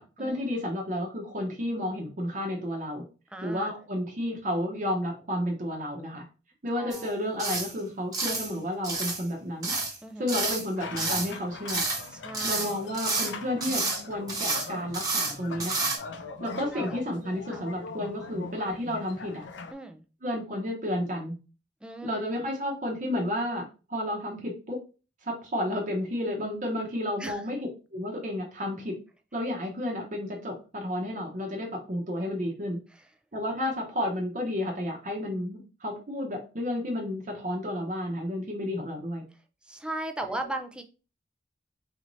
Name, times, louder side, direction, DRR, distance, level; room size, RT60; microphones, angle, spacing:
voice 1, 0.0-3.0 3.4-6.2 6.6-9.8 10.2-11.8 12.4-15.9 16.4-19.4 20.2-21.4 22.0-24.8 25.2-27.6 27.9-28.9 29.3-32.8 33.3-39.2, left 1 dB, 45° right, 0 dB, 0.8 m, -31 dB
voice 2, 3.3-3.8 6.8-7.2 10.0-10.4 12.1-12.7 16.7-17.0 17.5-17.6 19.7-20.0 21.8-22.3 27.2-27.4 39.6-40.8, right 1 dB, 5° right, 5 dB, 0.3 m, -37 dB
sound 1, 6.9-7.1 7.4-7.7 8.1-8.5 8.8-9.2 9.6-10.0 10.3-10.7 11.0-11.3 11.7-12.1 12.3-13.3 13.6-14.0 14.3-14.7 14.9-15.3 15.6-16.0, right 3 dB, 20° right, 1.1 m, -29 dB
sound 2, 10.8-19.7, left 4 dB, 85° left, 0.5 m, -41 dB
4.2 x 2.6 x 3.0 m, 0.34 s
head